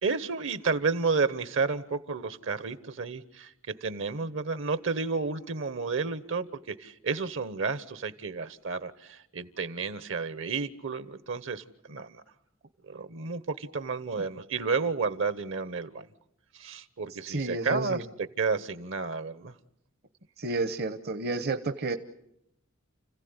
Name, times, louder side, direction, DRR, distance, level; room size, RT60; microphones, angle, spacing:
voice 1, 0.0-12.2 12.8-16.1 16.5-18.1 18.4-19.5, right 4 dB, 65° right, 14 dB, 1.2 m, -31 dB
voice 2, 17.3-18.0 20.4-22.0, right 3 dB, 50° right, 10 dB, 1.0 m, -31 dB
30.0 x 16.0 x 9.7 m, 0.79 s
head